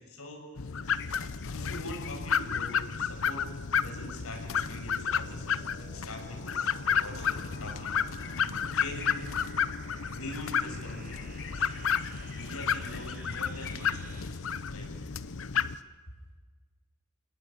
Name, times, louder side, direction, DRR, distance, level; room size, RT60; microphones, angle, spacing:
sound 1, 0.6-15.8, left 7 dB, 70° left, 0.8 m, -32 dB
sound 2, 0.8-15.8, left 9 dB, 55° left, 1.3 m, -51 dB
voice 1, 1.3-9.2 10.0-11.7 12.4-14.2 14.7-14.9, left 1 dB, 85° left, 3 dB, 6.6 m, -44 dB
sound 3, 4.2-14.2, right 2 dB, 40° right, 5.1 m, -51 dB
27.5 x 19.0 x 9.0 m, 1.5 s
head